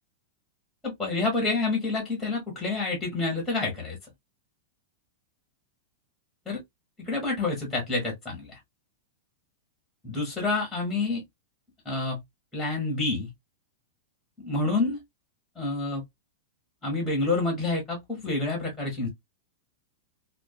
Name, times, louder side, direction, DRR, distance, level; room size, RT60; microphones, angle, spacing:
voice 1, 0.8-4.0 6.5-6.6 7.0-8.5 10.0-11.2 11.8-12.2 12.5-13.3 14.4-15.0 15.6-16.0 16.8-19.1, left 3 dB, 5° left, 1.1 m, -28 dB
2.5 x 2.2 x 2.3 m
supercardioid pair, 160°, 0 cm